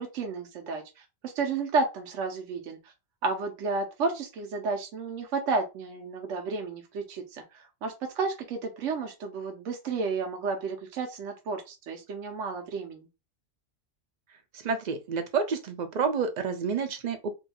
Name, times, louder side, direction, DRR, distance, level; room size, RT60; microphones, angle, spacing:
voice 1, 0.0-2.8 3.2-13.1, right 4 dB, 80° right, 1.0 m, -32 dB
voice 2, 14.6-17.3, right 5 dB, 60° right, 0.4 m, -29 dB
2.7 x 2.3 x 4.1 m
omnidirectional pair, 1.3 m